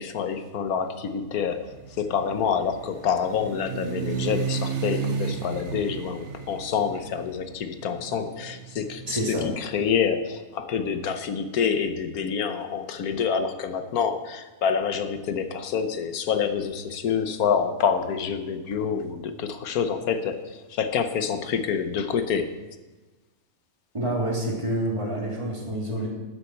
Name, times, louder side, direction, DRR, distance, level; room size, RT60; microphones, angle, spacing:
voice 1, 0.0-22.5, left 7 dB, 90° left, 9 dB, 1.4 m, -27 dB
sound 1, 1.5-9.5, right 6 dB, 55° right, 1.2 m, -33 dB
voice 2, 9.1-9.5 23.9-26.1, right 1 dB, 20° right, -3 dB, 2.6 m, -27 dB
13.5 x 9.3 x 4.4 m, 1.2 s
omnidirectional pair, 1.5 m